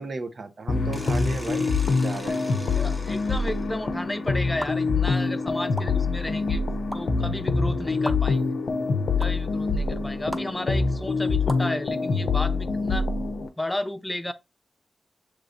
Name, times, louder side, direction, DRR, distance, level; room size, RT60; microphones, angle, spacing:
voice 1, 0.0-2.4, right 3 dB, 65° right, 0.6 m, -35 dB
sound 1, 0.7-13.5, left 4 dB, 85° left, 0.5 m, -25 dB
sound 2, 0.9-3.8, right 1 dB, 25° right, 1.0 m, -44 dB
voice 2, 2.8-6.6 6.9-8.4 9.2-13.1 13.4-14.3, left 1 dB, 20° left, 0.5 m, -33 dB
sound 3, 4.6-4.7 5.8-5.9 6.9-7.0 8.0-8.1 9.2-9.3 10.3-10.4 11.5-11.7, equal, ahead, 0.8 m, -32 dB
6.5 x 3.0 x 2.6 m
cardioid pair, 45°, 0 cm